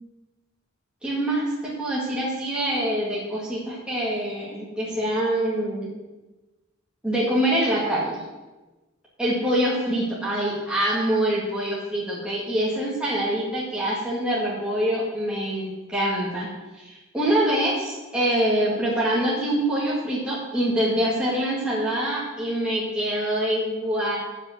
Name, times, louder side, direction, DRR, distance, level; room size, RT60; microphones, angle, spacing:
voice 1, 1.0-5.9 7.0-8.2 9.2-16.5 16.7-24.2, right 1 dB, 5° right, -7 dB, 1.8 m, -25 dB
9.0 x 5.2 x 6.4 m, 1.1 s
head